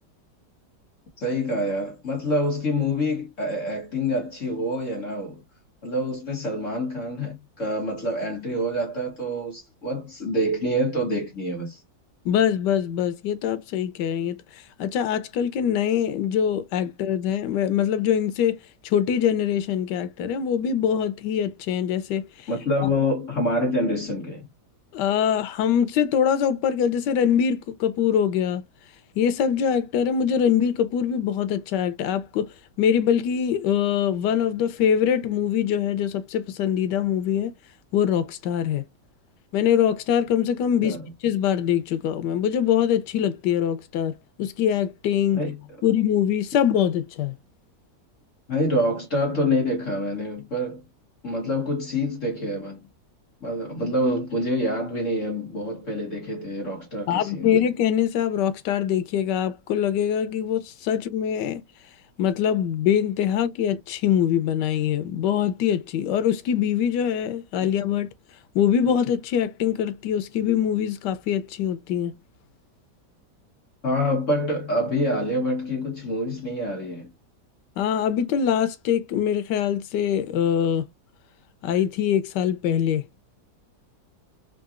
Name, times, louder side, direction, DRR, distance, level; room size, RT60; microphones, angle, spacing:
voice 1, 1.2-5.4 5.8-11.8 22.5-24.5 40.8-41.1 45.3-45.6 48.5-50.8 51.2-52.9 53.4-57.5 73.8-77.1, left 1 dB, 50° left, 1.4 m, -26 dB
voice 2, 12.2-14.4 14.8-18.6 18.8-22.3 24.9-28.6 29.2-32.5 32.8-37.5 37.9-38.8 39.5-41.0 41.2-45.4 45.8-47.3 57.1-61.6 62.2-68.1 68.5-72.1 77.8-80.9 81.6-83.0, left 9 dB, 90° left, 1.2 m, -23 dB
3.8 x 2.2 x 2.4 m
omnidirectional pair, 1.8 m